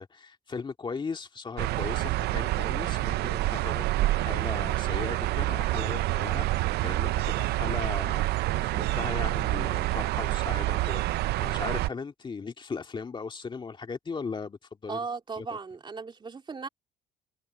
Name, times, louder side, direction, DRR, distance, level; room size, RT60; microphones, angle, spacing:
voice 1, 0.0-15.0 15.4-15.5, left 5 dB, 30° left, 2.2 m, -38 dB
sound 1, 1.6-11.9, right 17 dB, 75° right, 0.5 m, -27 dB
voice 2, 14.9-16.7, right 5 dB, 30° right, 2.9 m, -36 dB
cardioid pair, 110°, 17 cm